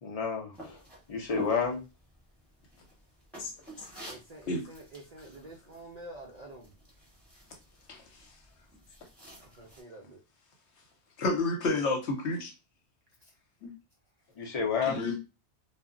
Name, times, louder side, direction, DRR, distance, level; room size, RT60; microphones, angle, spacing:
voice 1, 0.0-0.8 1.1-1.8 14.4-15.0, left 5 dB, 40° left, 0.6 m, -30 dB
sound 1, 0.5-9.8, right 1 dB, ahead, 1.0 m, -49 dB
voice 2, 4.1-6.7 9.2-10.2, right 2 dB, 60° right, 0.4 m, -48 dB
voice 3, 11.2-12.5 13.6-13.7 14.9-15.2, left 2 dB, 80° left, 1.0 m, -30 dB
2.1 x 2.1 x 3.6 m
omnidirectional pair, 1.1 m